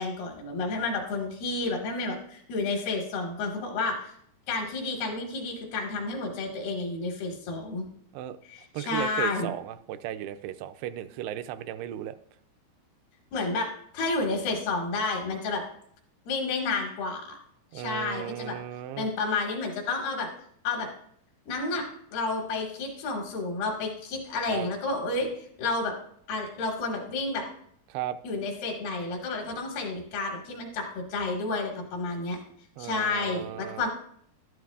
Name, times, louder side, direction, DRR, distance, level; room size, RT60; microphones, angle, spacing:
voice 1, 0.0-4.1 4.5-7.9 8.5-9.5 13.3-15.6 16.3-17.4 17.7-18.6 19.0-20.3 20.6-20.9 21.5-21.9 22.1-25.3 25.6-25.9 26.3-27.5 28.2-32.4 32.8-33.9, left 3 dB, 75° left, 1 dB, 3.7 m, -30 dB
voice 2, 8.7-12.2 17.7-19.1 24.5-24.7 27.9-28.2 32.8-33.9, right 12 dB, 85° right, 9 dB, 2.6 m, -35 dB
12.5 x 12.0 x 2.4 m, 0.66 s
omnidirectional pair, 4.6 m